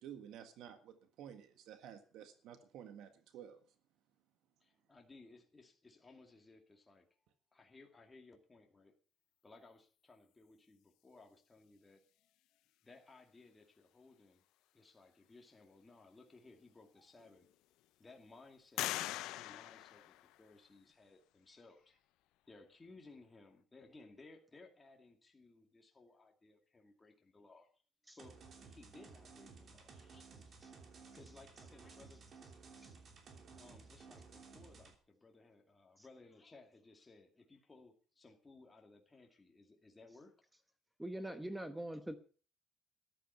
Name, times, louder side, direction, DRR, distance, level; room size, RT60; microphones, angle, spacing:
voice 1, 0.0-3.6, right 9 dB, 70° right, 8 dB, 1.6 m, -52 dB
voice 2, 4.6-7.1 7.5-8.9 9.4-12.0 12.8-14.4 14.7-17.5 18.0-22.0 22.5-27.7 28.2-28.4 28.6-30.6 31.1-33.0 33.6-40.3, left 3 dB, 15° left, 2 dB, 2.3 m, -61 dB
sound 1, 16.5-16.6 17.2-17.8 18.8-20.7, left 16 dB, 85° left, 0.6 m, -42 dB
sound 2, 28.2-35.0, right 4 dB, 40° right, 3.0 m, -56 dB
voice 3, 41.0-42.2, right 1 dB, 5° right, 10 dB, 1.0 m, -43 dB
13.5 x 11.5 x 5.7 m, 0.40 s
cardioid pair, 150°, 0 cm